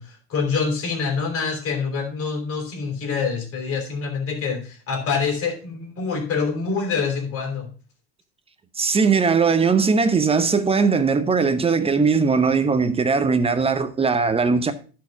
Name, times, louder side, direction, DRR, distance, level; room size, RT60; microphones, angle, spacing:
voice 1, 0.0-7.7, left 5 dB, 35° left, 4.0 m, -26 dB
voice 2, 8.8-14.7, right 5 dB, 15° right, 0.8 m, -19 dB
10.5 x 4.8 x 5.3 m
supercardioid pair, 110°, 38 cm